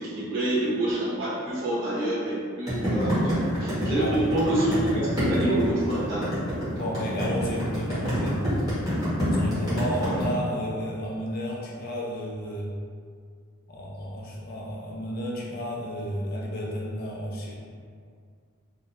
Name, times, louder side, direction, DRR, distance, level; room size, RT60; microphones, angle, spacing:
voice 1, 0.0-6.3 10.0-10.2, right 1 dB, 55° right, -10 dB, 0.7 m, -27 dB
sound 1, 2.7-10.2, equal, 15° right, 0.9 m, -27 dB
voice 2, 3.6-4.2 6.7-8.7 9.3-12.8 13.7-17.5, equal, 45° left, -3 dB, 0.3 m, -32 dB
2.4 x 2.0 x 2.8 m, 2.1 s
head